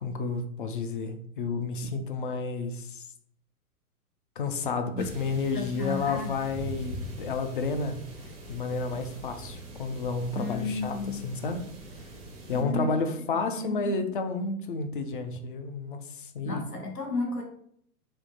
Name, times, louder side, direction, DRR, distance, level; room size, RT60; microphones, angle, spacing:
voice 1, 0.0-3.0 4.4-8.0 8.5-11.6 12.5-16.6, left 4 dB, 40° left, 7 dB, 0.4 m, -31 dB
sound 1, 5.0-12.6, right 1 dB, 15° right, 0.5 m, -42 dB
voice 2, 5.5-6.3 10.3-11.3 12.5-13.0 13.5-14.1 16.4-17.4, left 3 dB, 90° left, 1 dB, 1.1 m, -33 dB
3.5 x 2.7 x 3.9 m, 0.68 s
figure-of-eight pair, 115°, 46 cm